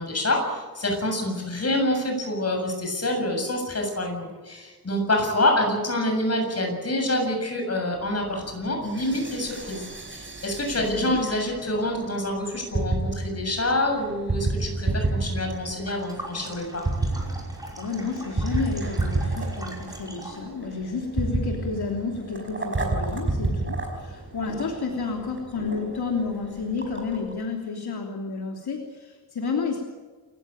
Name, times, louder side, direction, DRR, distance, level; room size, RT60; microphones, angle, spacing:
voice 1, 0.0-9.8 10.1-16.8, left 1 dB, 40° left, 3 dB, 7.4 m, -26 dB
sound 1, 7.9-27.4, right 2 dB, 30° right, 5.0 m, -31 dB
voice 2, 10.8-11.2 17.8-29.8, left 4 dB, 80° left, 1 dB, 3.3 m, -31 dB
sound 2, 15.7-20.5, right 1 dB, 10° right, 5.5 m, -42 dB
28.0 x 15.0 x 9.0 m, 1.3 s
wide cardioid pair, 155°, 38 cm